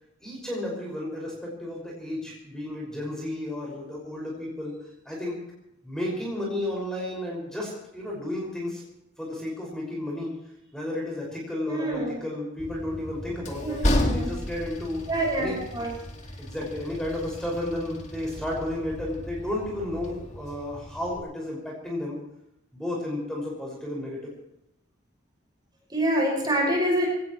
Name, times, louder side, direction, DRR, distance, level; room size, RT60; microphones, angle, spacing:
voice 1, 0.2-5.4 5.8-8.8 9.2-10.4 10.7-15.0 15.4-15.6 16.4-22.2 22.7-24.3, left 1 dB, 5° left, -2 dB, 6.0 m, -32 dB
voice 2, 11.7-12.2 13.6-14.4 15.1-15.9 25.9-27.1, right 1 dB, 20° right, -2 dB, 6.1 m, -26 dB
Train, 12.6-21.2, equal, 35° left, 2.2 m, -33 dB
23.0 x 18.0 x 3.2 m, 0.81 s
head